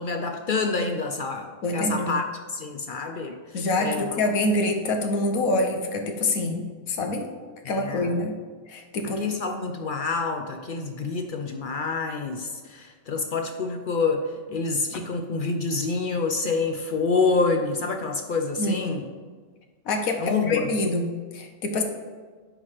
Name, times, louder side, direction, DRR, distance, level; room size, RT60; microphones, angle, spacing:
voice 1, 0.0-4.2 7.7-8.1 9.0-19.1 20.2-20.7, left 4 dB, 60° left, 5 dB, 0.5 m, -27 dB
voice 2, 1.6-2.1 3.5-7.3 7.6-8.3 8.7-9.2 14.9-15.1 18.6-18.9 19.8-21.8, left 2 dB, 85° left, 4 dB, 1.3 m, -26 dB
9.7 x 3.3 x 5.7 m, 1.5 s
omnidirectional pair, 1.4 m